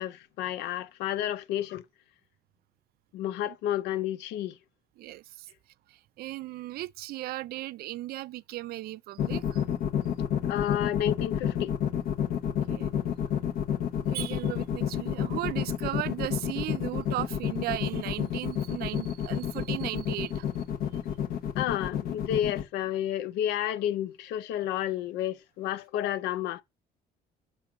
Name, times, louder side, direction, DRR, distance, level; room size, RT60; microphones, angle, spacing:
voice 1, 0.0-1.8 3.1-4.5 10.5-11.7 21.6-26.6, left 11 dB, 90° left, 0.7 m, -31 dB
voice 2, 5.0-5.5 5.9-9.6 12.5-12.9 14.1-20.5, right 16 dB, 65° right, 0.4 m, -36 dB
sound 1, 9.2-22.6, left 9 dB, 60° left, 1.0 m, -29 dB
6.1 x 3.1 x 5.0 m
cardioid pair, 110°, 17 cm